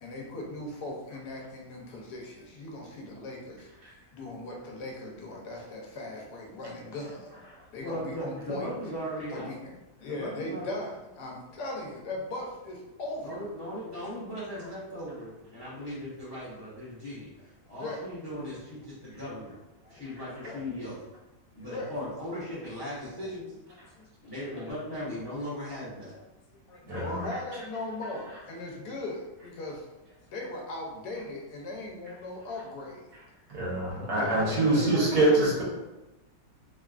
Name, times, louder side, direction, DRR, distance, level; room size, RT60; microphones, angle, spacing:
voice 1, 0.0-3.7 4.1-7.4 7.7-8.7 9.3-13.4 17.8-18.0 19.0-19.1 19.8-20.0 20.4-20.6 21.7-21.9 24.0-24.7 25.6-25.7 26.1-26.2 26.5-29.8 30.3-33.1 34.2-35.0, left 2 dB, 80° left, -1 dB, 1.2 m, -39 dB
voice 2, 7.8-9.5 10.0-10.8 13.2-19.6 19.9-21.0 21.5-23.5 24.2-26.1 34.0-35.6, equal, 45° left, -8 dB, 0.3 m, -37 dB
voice 3, 26.9-27.2 33.5-35.6, right 2 dB, 70° right, -6 dB, 1.6 m, -25 dB
3.3 x 2.4 x 2.3 m, 1.0 s
omnidirectional pair, 1.8 m